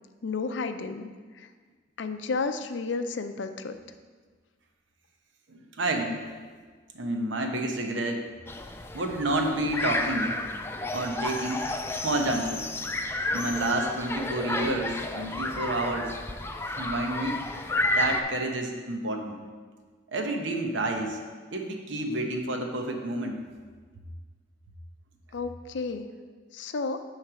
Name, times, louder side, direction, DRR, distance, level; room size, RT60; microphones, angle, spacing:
voice 1, 0.2-1.1 1.4-1.5 2.0-3.8 25.3-26.1 26.5-27.0, left 4 dB, 75° left, 8 dB, 0.5 m, -32 dB
voice 2, 5.5-6.2 6.9-8.3 8.9-10.4 10.9-11.6 12.0-12.7 13.3-16.2 16.8-17.4 18.0-19.4 20.1-21.2 21.5-23.4, right 1 dB, 85° right, 3 dB, 0.9 m, -29 dB
sound 1, 8.5-18.2, left 2 dB, 15° left, 0.3 m, -31 dB
8.8 x 3.2 x 6.1 m, 1.5 s
head